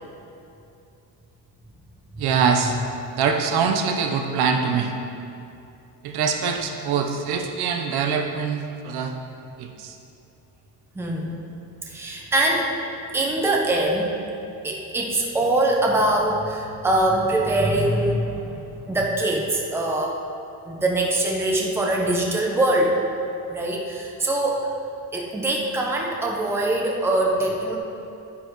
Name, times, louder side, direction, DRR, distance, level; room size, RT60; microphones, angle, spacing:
voice 1, 2.2-2.7 3.1-4.9 6.0-9.1 9.6-10.0, right 6 dB, 70° right, 4 dB, 0.9 m, -23 dB
voice 2, 10.9-11.4 11.9-12.7 13.1-14.1 14.6-20.2 20.6-23.0 23.5-24.7 25.1-27.8, right 1 dB, 5° right, -1 dB, 0.7 m, -23 dB
11.0 x 9.9 x 3.1 m, 2.7 s
cardioid pair, 170°, 40 cm